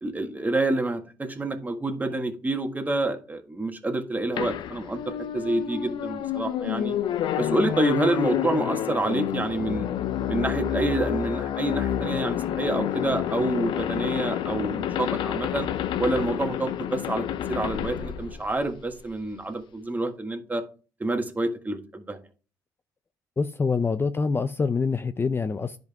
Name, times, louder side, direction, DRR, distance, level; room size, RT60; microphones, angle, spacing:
voice 1, 0.0-6.9 7.4-9.9 10.3-15.7 16.0-20.6 21.0-22.2, right 2 dB, 20° right, 5 dB, 1.7 m, -28 dB
sound 1, 4.4-19.1, left 10 dB, 65° left, 0.6 m, -29 dB
voice 2, 23.4-25.8, left 4 dB, 25° left, 11 dB, 0.5 m, -25 dB
10.5 x 5.3 x 3.5 m, 0.36 s
supercardioid pair, 65°, 9 cm